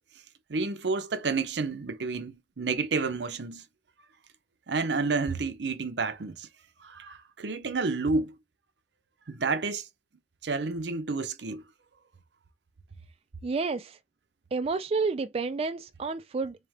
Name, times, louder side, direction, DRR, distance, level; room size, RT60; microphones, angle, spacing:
voice 1, 0.5-3.6 4.7-6.5 6.8-8.3 9.3-9.9 10.4-11.6, right 4 dB, 75° right, 0.7 m, -30 dB
voice 2, 13.4-14.0 14.5-16.7, right 4 dB, 35° right, 0.3 m, -30 dB
3.6 x 3.3 x 3.5 m
head